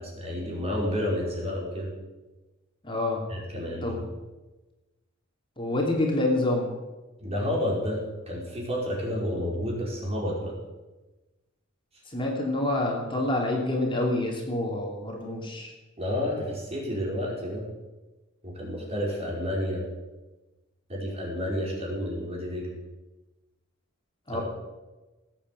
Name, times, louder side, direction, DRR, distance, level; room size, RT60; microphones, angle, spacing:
voice 1, 0.0-1.9 3.3-4.0 7.2-8.0 8.3-10.5 16.0-17.7 18.4-19.8 20.9-22.7 24.3-24.4, left 1 dB, 30° right, -2 dB, 5.1 m, -30 dB
voice 2, 2.8-3.2 3.8-4.0 5.6-6.7 12.1-15.7 24.3-24.4, left 1 dB, 25° left, -1 dB, 3.0 m, -27 dB
18.5 x 8.9 x 7.8 m, 1.1 s
head